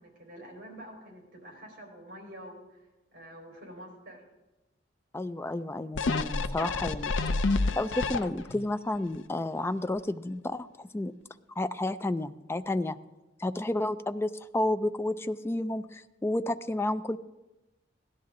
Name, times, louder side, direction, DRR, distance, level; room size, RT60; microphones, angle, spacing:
voice 1, 0.0-2.8 3.1-4.2, equal, 55° right, 0 dB, 4.0 m, -47 dB
voice 2, 5.1-7.1 7.8-11.1 11.6-13.0 13.4-17.2, left 1 dB, 15° left, 11 dB, 0.3 m, -31 dB
sound 1, 6.0-8.7 9.1-9.2, left 3 dB, 75° left, 0.5 m, -29 dB
16.5 x 11.0 x 3.7 m, 1.0 s
head